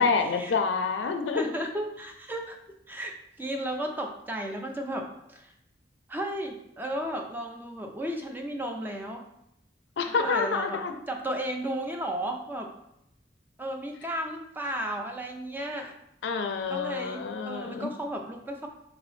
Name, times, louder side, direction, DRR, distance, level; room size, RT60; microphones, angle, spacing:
voice 1, 0.0-1.5 10.0-11.0 16.2-17.9, left 5 dB, 75° left, 6 dB, 0.4 m, -27 dB
voice 2, 1.3-5.5 6.1-9.2 10.1-10.8 11.1-12.7 13.6-15.9 16.7-18.7, right 1 dB, 10° right, 3 dB, 0.3 m, -34 dB
4.0 x 2.7 x 3.1 m, 0.80 s
head